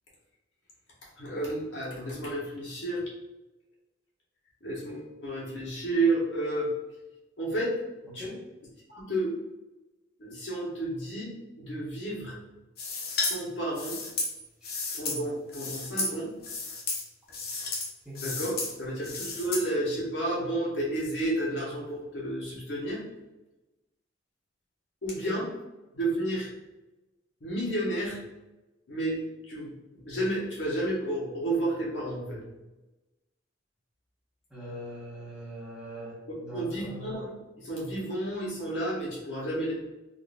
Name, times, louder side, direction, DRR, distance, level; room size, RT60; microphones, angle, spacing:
voice 1, 1.2-3.0 4.6-6.7 7.4-7.7 8.1-8.2 8.9-9.3 10.2-11.3 11.6-12.3 13.1-14.0 14.9-16.3 18.2-23.0 25.0-25.5 25.9-26.5 27.4-28.2 28.9-29.2 29.5-29.7 30.0-32.4 36.5-37.3 37.6-39.7, right 1 dB, 80° left, -5 dB, 1.3 m, -31 dB
sound 1, 12.8-13.4 13.7-15.2 15.5-16.1 16.4-17.0 17.3-17.9 18.1-18.7 19.0-19.6, left 3 dB, 55° left, 0.7 m, -32 dB
voice 2, 34.5-37.1, equal, 5° right, -8 dB, 1.1 m, -41 dB
3.7 x 2.7 x 2.6 m, 1.0 s
head